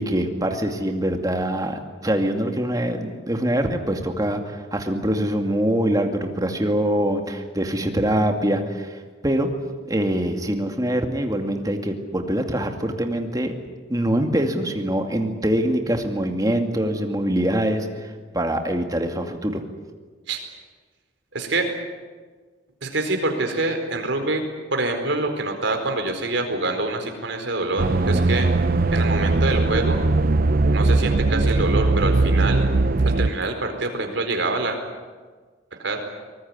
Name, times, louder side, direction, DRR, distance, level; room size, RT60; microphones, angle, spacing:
voice 1, 0.0-9.5 9.9-13.5 13.9-19.6 28.1-28.4, right 1 dB, 20° right, 4 dB, 2.4 m, -24 dB
voice 2, 21.3-21.7 22.8-24.4 24.7-28.5 28.9-30.0 30.7-32.7 33.0-34.8 35.7-36.0, right 2 dB, 75° right, 5 dB, 4.5 m, -25 dB
sound 1, 27.8-33.3, right 2 dB, 50° right, 0.6 m, -19 dB
23.5 x 19.5 x 9.7 m, 1.4 s
head